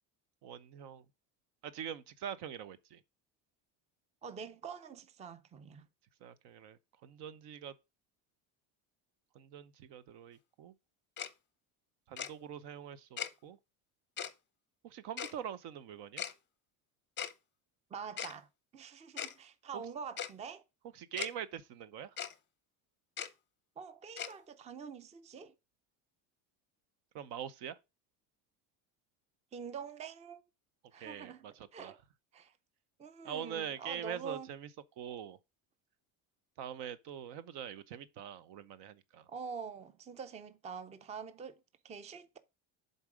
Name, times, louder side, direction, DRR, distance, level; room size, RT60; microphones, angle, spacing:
voice 1, 0.4-1.0 1.6-3.0 6.2-7.7 9.3-10.7 12.1-13.6 14.8-16.2 19.7-19.8 20.9-22.2 27.1-27.8 31.0-32.0 33.2-34.7 35.0-35.4 36.6-39.3, right 9 dB, 70° right, 0.8 m, -44 dB
voice 2, 4.2-5.9 17.9-18.5 18.7-20.6 23.8-25.5 29.5-30.4 30.9-32.0 32.3-32.5 33.0-34.5 39.3-42.4, right 6 dB, 15° right, 0.4 m, -45 dB
Tick-tock, 11.2-11.3 12.2-12.3 13.2-13.3 14.2-14.3 15.2-15.3 16.2-16.3 17.2-17.3 18.2-18.3 19.2-19.3 20.2-20.3 21.2-21.3 22.2-22.3 23.2-23.3 24.2-24.3, left 9 dB, 25° left, 0.6 m, -38 dB
7.2 x 4.1 x 4.9 m
cardioid pair, 135°, 42 cm